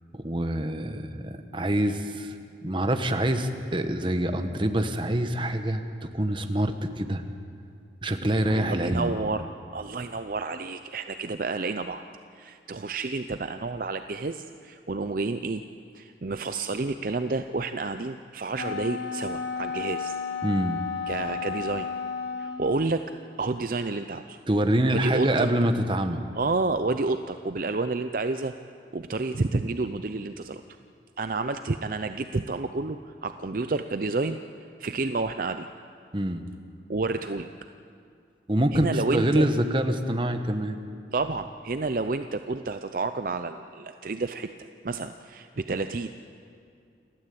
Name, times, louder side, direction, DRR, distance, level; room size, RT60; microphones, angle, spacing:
voice 1, 0.1-2.3 2.6-7.2 8.0-9.1 20.4-20.8 24.5-26.2 36.1-36.4 38.5-40.8, right 1 dB, 25° right, 7 dB, 1.2 m, -25 dB
voice 2, 8.5-12.0 12.3-15.6 15.9-20.2 21.1-21.9 22.4-23.1 23.4-24.4 24.9-25.5 26.4-28.5 28.9-30.6 31.2-34.4 34.8-35.7 36.9-37.5 38.7-39.5 41.1-46.1, right 3 dB, 50° right, 9 dB, 0.6 m, -30 dB
Wind instrument woodwind instrument, 18.5-22.8, left 5 dB, 80° left, 1.6 m, -33 dB
29.0 x 13.0 x 8.5 m, 2.4 s
head